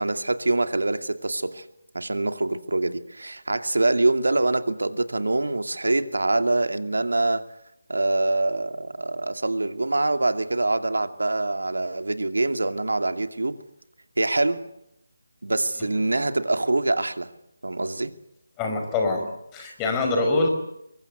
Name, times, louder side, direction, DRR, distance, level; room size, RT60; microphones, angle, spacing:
voice 1, 0.0-1.7 1.9-7.4 7.9-13.6 14.2-14.6 15.4-17.3 17.6-18.1, right 2 dB, 75° right, 8 dB, 2.5 m, -24 dB
voice 2, 18.6-20.5, left 3 dB, 15° left, 3 dB, 5.3 m, -24 dB
25.0 x 23.0 x 8.4 m, 0.83 s
figure-of-eight pair, 155°, 0 cm